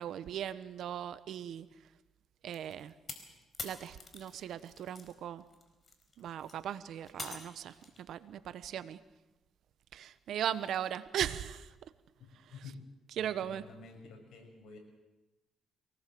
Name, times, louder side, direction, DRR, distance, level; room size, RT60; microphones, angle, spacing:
voice 1, 0.0-1.7 2.4-2.9 3.6-5.4 6.2-9.0 9.9-11.7 12.3-12.5 13.2-13.6, right 10 dB, 75° right, 13 dB, 1.1 m, -38 dB
sound 1, 2.5-5.1 5.5-8.0, left 3 dB, 35° left, 4.4 m, -46 dB
voice 2, 12.2-12.8 13.2-14.8, left 4 dB, 70° left, 3 dB, 6.8 m, -51 dB
24.0 x 19.0 x 7.8 m, 1.1 s
cardioid pair, 90°, 0 cm